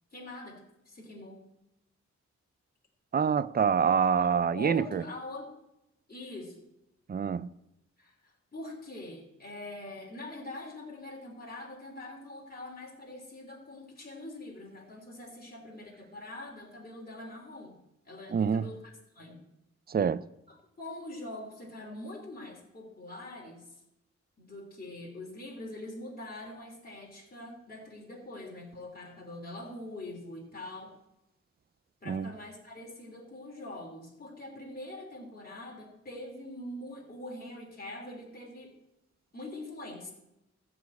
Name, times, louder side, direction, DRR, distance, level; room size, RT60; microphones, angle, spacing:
voice 1, 0.1-1.4 3.8-5.6 6.1-6.6 8.0-17.8 18.0-19.5 20.5-23.8 24.4-31.0 32.0-38.8 39.3-40.1, left 1 dB, 30° left, 3.1 m, -44 dB
voice 2, 3.1-5.0 7.1-7.5 18.3-18.7 19.9-20.2 32.1-32.3, right 7 dB, 35° right, 0.4 m, -26 dB
13.5 x 5.0 x 8.4 m
wide cardioid pair, 90°, 29 cm